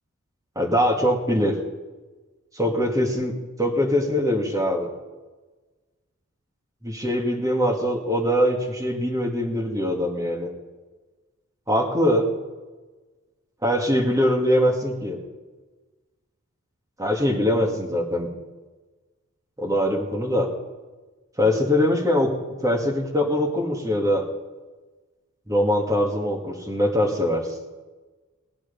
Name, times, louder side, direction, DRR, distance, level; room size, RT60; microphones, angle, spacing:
voice 1, 0.6-1.6 2.6-3.3 3.6-4.9 6.8-10.5 11.7-12.3 13.6-15.2 17.0-18.3 19.6-20.5 21.4-22.3 22.6-24.3 25.5-27.5, equal, 15° right, 1 dB, 1.9 m, -22 dB
19.0 x 9.3 x 5.3 m, 1.3 s
head